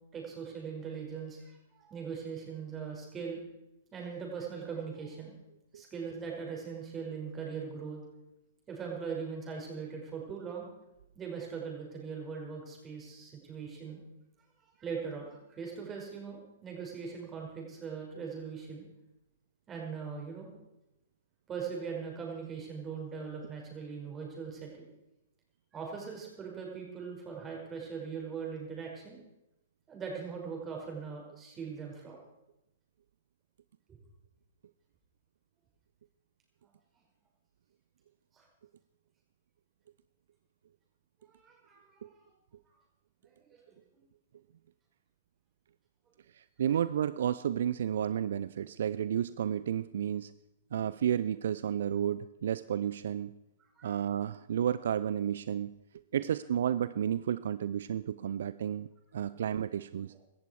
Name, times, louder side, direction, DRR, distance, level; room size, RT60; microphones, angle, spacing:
voice 1, 0.1-3.4 3.9-5.3 5.7-8.0 8.7-10.7 11.1-14.0 14.6-18.9 19.7-20.5 21.5-24.9 25.7-29.2 29.9-32.2 33.9-34.0 38.3-38.5 41.2-42.2 43.5-43.6 53.6-53.9 56.2-56.3 59.3-59.4, right 6 dB, 20° right, -1 dB, 5.7 m, -40 dB
voice 2, 46.4-50.3 50.7-53.4 53.8-55.7 56.1-58.9 59.1-60.1, right 9 dB, 65° right, 16 dB, 0.4 m, -32 dB
17.0 x 13.5 x 4.7 m, 0.93 s
hypercardioid pair, 120°, 0 cm